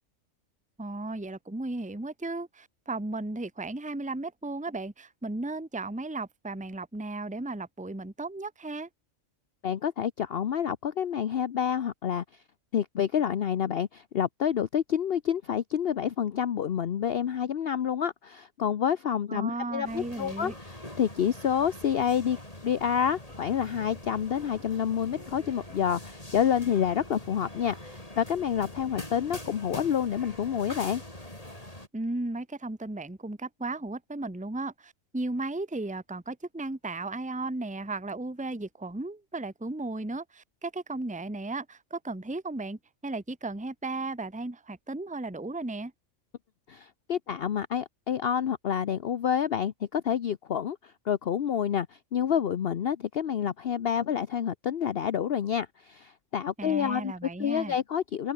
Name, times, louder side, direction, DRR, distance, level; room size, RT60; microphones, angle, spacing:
voice 1, 0.8-8.9 19.3-20.5 31.9-45.9 56.6-57.8, right 2 dB, 5° right, 1.2 m, -35 dB
voice 2, 9.6-12.2 12.7-31.0 46.7-57.1 57.4-58.3, left 8 dB, 50° left, 0.9 m, -28 dB
sound 1, 19.8-31.9, left 1 dB, 25° left, 6.2 m, -44 dB
open air
omnidirectional pair, 1.4 m